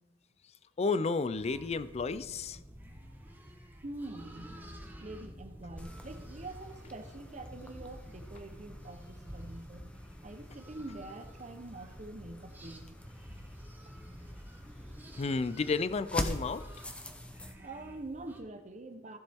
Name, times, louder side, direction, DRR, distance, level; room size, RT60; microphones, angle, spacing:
voice 1, 0.8-2.6 15.2-16.7, left 4 dB, 35° left, 15 dB, 0.4 m, -31 dB
sound 1, 1.3-18.4, equal, 10° right, 1.1 m, -50 dB
voice 2, 3.8-4.5 5.0-9.8 10.2-12.9 17.0-17.2 17.6-19.2, right 2 dB, 40° right, 7 dB, 0.9 m, -45 dB
sound 2, 5.8-17.5, left 1 dB, 5° left, 0.8 m, -45 dB
15.0 x 7.2 x 3.6 m, 1.1 s
head